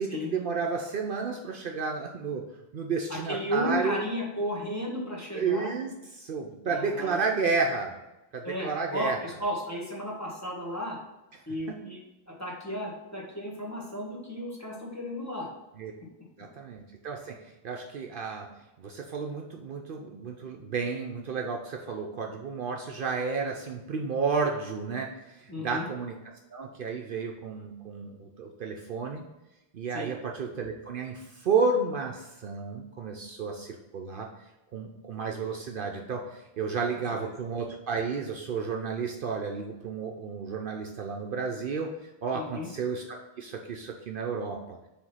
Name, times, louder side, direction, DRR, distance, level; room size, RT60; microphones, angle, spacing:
voice 1, 0.0-2.4 2.7-4.0 5.3-5.9 6.2-7.9 8.3-9.2 15.8-15.9 16.4-17.3 17.6-18.5 18.8-26.1 26.5-29.2 29.7-34.3 34.7-36.2 36.6-41.9 42.2-44.8, right 5 dB, 60° right, 1 dB, 0.7 m, -31 dB
voice 2, 3.1-5.7 6.6-7.2 8.4-11.0 11.5-15.5 25.5-25.9 29.9-30.1 37.2-37.3 42.3-42.7, left 1 dB, 15° left, -4 dB, 1.4 m, -34 dB
5.0 x 3.5 x 5.6 m, 0.97 s
omnidirectional pair, 1.1 m